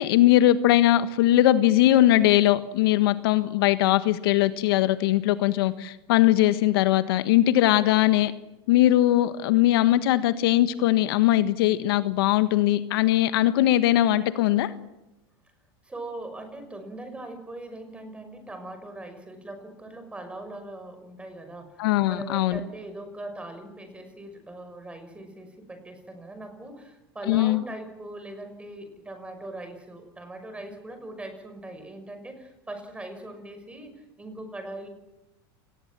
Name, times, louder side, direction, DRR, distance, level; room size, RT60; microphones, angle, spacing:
voice 1, 0.0-8.3 8.7-14.7 21.8-22.6 27.3-27.6, left 14 dB, 75° left, 12 dB, 1.5 m, -20 dB
voice 2, 15.8-34.9, right 1 dB, 10° right, 7 dB, 5.9 m, -40 dB
29.0 x 20.0 x 7.6 m, 0.96 s
supercardioid pair, 135°, 13 cm